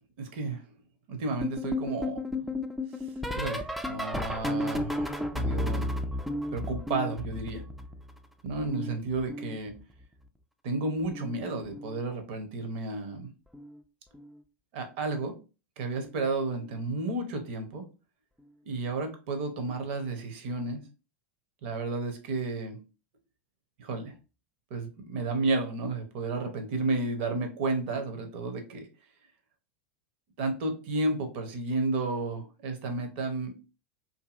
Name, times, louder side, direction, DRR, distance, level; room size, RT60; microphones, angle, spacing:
voice 1, 0.2-0.6 1.1-2.2 3.3-5.9 6.5-7.6 8.4-9.7 10.6-13.3 14.7-15.4 15.8-17.9 18.7-20.8 21.6-22.8 23.8-24.1 24.7-28.9 30.4-33.5, right 3 dB, 55° right, 6 dB, 0.7 m, -32 dB
sound 1, 1.4-8.2 8.5-10.0 11.0-11.4 11.6-12.0 13.5-13.8 14.1-14.4 16.0-16.1, left 1 dB, ahead, 0.3 m, -33 dB
2.6 x 2.6 x 2.4 m, 0.32 s
figure-of-eight pair, 90°, 7 cm